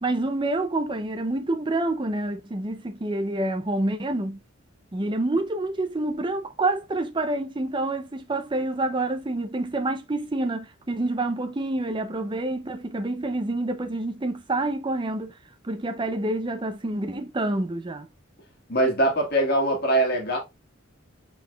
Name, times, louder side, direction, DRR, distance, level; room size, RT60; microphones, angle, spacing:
voice 1, 0.0-4.4 4.9-15.3 15.6-18.1, right 2 dB, 25° right, 0.5 m, -27 dB
voice 2, 18.7-20.4, right 1 dB, 50° left, 1.6 m, -22 dB
4.9 x 3.9 x 2.3 m
head